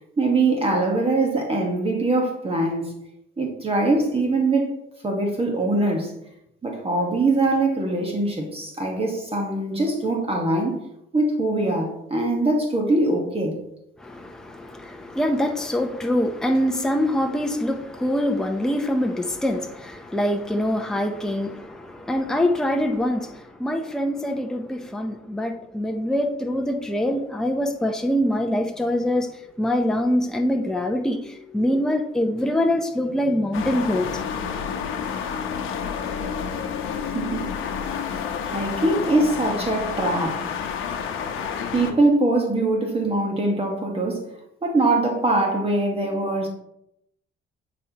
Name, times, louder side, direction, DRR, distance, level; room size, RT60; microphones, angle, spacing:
voice 1, 0.2-2.9 3.4-4.7 5.0-6.1 6.6-10.7 11.1-13.6 37.1-37.5 38.4-40.4 41.7-44.3 44.6-46.5, right 2 dB, 30° right, 1.3 m, -22 dB
voice 2, 14.0-34.2, left 1 dB, 5° left, 0.7 m, -24 dB
sound 1, 33.5-41.9, left 7 dB, 85° left, 0.8 m, -29 dB
8.6 x 4.2 x 2.9 m
cardioid pair, 90°, 20 cm